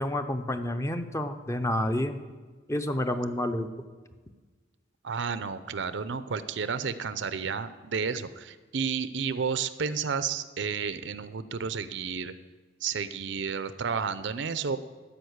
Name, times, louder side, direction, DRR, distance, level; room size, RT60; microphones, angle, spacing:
voice 1, 0.0-2.2 2.7-3.7, left 1 dB, 15° left, 8 dB, 0.6 m, -29 dB
voice 2, 5.0-12.3 12.8-14.8, right 6 dB, 70° right, 13 dB, 0.6 m, -31 dB
13.0 x 5.2 x 7.9 m, 1.4 s
head